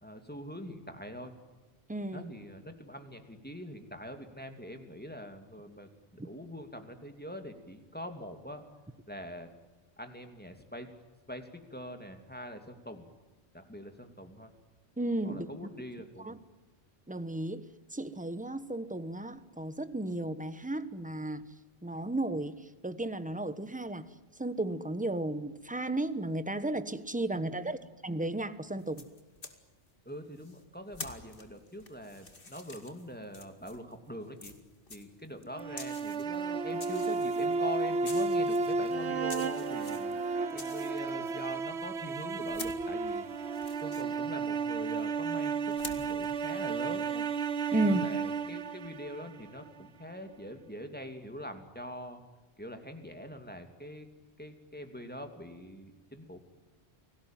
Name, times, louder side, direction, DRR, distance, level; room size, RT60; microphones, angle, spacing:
voice 1, 0.0-1.3 2.1-8.6 9.1-9.5 10.0-10.9 11.3-13.0 13.5-14.5 15.2-16.4 27.3-27.9 30.0-34.5 34.9-40.1 40.5-43.3 43.8-47.2 47.8-52.2 52.6-54.1 54.4-56.4, equal, 10° left, 6 dB, 2.8 m, -44 dB
voice 2, 1.9-2.3 6.2-6.3 15.0-15.4 16.2-16.3 17.1-17.6 17.9-21.4 21.8-22.5 22.8-24.0 24.4-29.1 47.7-48.0, right 2 dB, 10° right, 12 dB, 1.2 m, -33 dB
sound 1, 28.8-29.6 30.4-33.9 34.4-41.5 42.0-45.0 45.4-46.3, left 3 dB, 55° left, 2.6 m, -48 dB
sound 2, 35.6-49.7, right 4 dB, 90° right, 1.4 m, -33 dB
29.5 x 19.0 x 9.2 m, 1.2 s
omnidirectional pair, 1.1 m